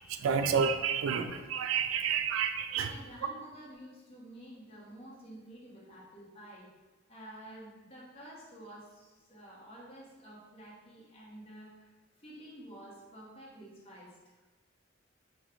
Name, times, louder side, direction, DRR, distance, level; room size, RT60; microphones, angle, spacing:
voice 1, 0.2-2.9, right 6 dB, 80° right, 8 dB, 0.3 m, -29 dB
voice 2, 2.7-6.7 7.1-11.9 12.2-14.1, right 1 dB, 30° left, -5 dB, 1.1 m, -50 dB
5.1 x 2.2 x 3.8 m, 1.2 s
head